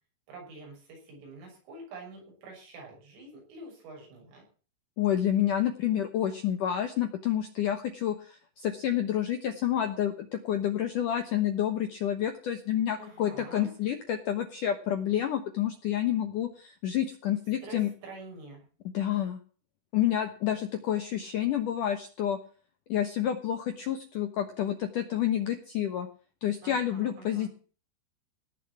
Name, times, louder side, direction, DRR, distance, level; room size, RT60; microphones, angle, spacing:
voice 1, 0.3-4.5 13.0-13.7 17.6-18.7 26.6-27.5, right 2 dB, 85° right, 0 dB, 9.0 m, -46 dB
voice 2, 5.0-17.9 18.9-19.4 19.9-22.4 22.9-26.1 26.4-27.5, left 10 dB, 85° left, 8 dB, 1.8 m, -29 dB
18.0 x 7.0 x 8.8 m, 0.40 s
omnidirectional pair, 5.6 m